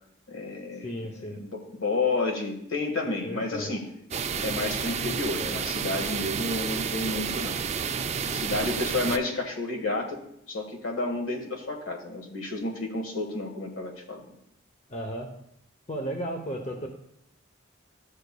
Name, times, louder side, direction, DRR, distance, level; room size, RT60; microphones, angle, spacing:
voice 1, 0.3-0.9 1.4-3.9 4.4-7.6 8.3-10.2 10.5-14.2, left 2 dB, 70° left, 2 dB, 1.5 m, -31 dB
voice 2, 0.8-1.4 3.2-3.7 14.9-15.3 15.9-16.9, equal, 35° left, 3 dB, 0.7 m, -34 dB
sound 1, 4.1-9.2, right 6 dB, 35° right, 0.4 m, -30 dB
13.5 x 6.5 x 2.3 m, 0.77 s
head